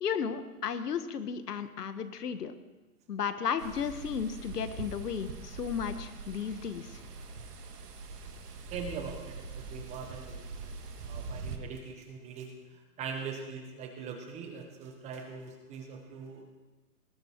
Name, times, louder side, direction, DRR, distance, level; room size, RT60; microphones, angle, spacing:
voice 1, 0.0-2.5 3.1-6.9, left 7 dB, 85° left, 10 dB, 1.6 m, -34 dB
sound 1, 3.6-11.6, right 4 dB, 85° right, 2.4 m, -43 dB
voice 2, 8.7-10.7 11.0-16.5, right 5 dB, 15° right, 3 dB, 1.3 m, -42 dB
19.5 x 12.5 x 4.7 m, 1.2 s
hypercardioid pair, 160°, 46 cm